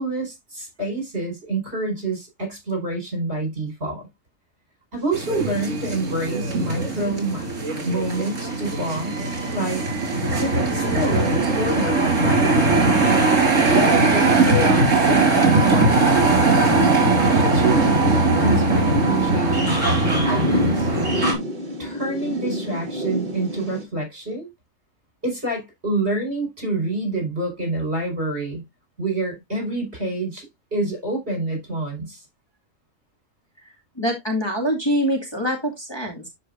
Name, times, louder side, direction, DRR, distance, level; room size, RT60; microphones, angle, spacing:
voice 1, 0.0-4.1 4.9-7.5 7.9-9.8 10.3-13.4 13.7-16.3 17.2-20.9 21.8-24.5 25.2-28.6 29.0-32.2, right 2 dB, 55° right, 5.1 m, -27 dB
sound 1, 5.0-23.8, equal, 35° right, 2.1 m, -30 dB
sound 2, 5.1-21.3, right 3 dB, 70° right, 2.8 m, -20 dB
voice 2, 34.0-36.3, equal, 20° left, 2.0 m, -24 dB
12.0 x 4.9 x 2.5 m
omnidirectional pair, 1.3 m